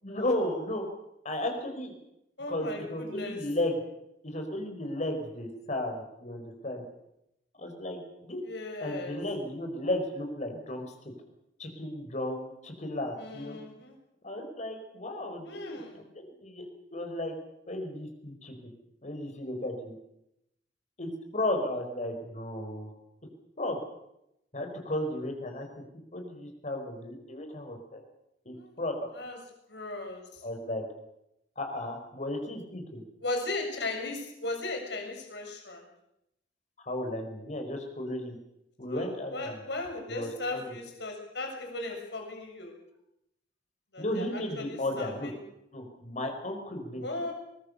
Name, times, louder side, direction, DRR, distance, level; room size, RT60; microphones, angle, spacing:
voice 1, 0.0-0.8 1.2-2.0 2.5-3.8 4.2-6.9 7.6-8.4 8.8-10.9 11.6-13.6 14.2-17.3 17.7-18.6 19.0-20.0 21.0-22.9 23.6-23.8 24.5-25.7 26.1-28.0 28.5-29.0 30.4-30.8 31.6-33.0 36.8-38.4 38.8-39.6 40.1-40.8 44.0-45.3 45.7-47.1, left 1 dB, 40° left, 5 dB, 5.2 m, -34 dB
voice 2, 2.4-3.4 8.4-9.2 13.2-14.0 15.5-16.0 28.6-28.7 29.2-29.4 29.7-30.4 33.2-35.8 38.9-42.8 43.9-45.3 47.0-47.3, left 2 dB, 70° left, 3 dB, 7.0 m, -37 dB
23.0 x 21.5 x 6.9 m, 0.83 s
head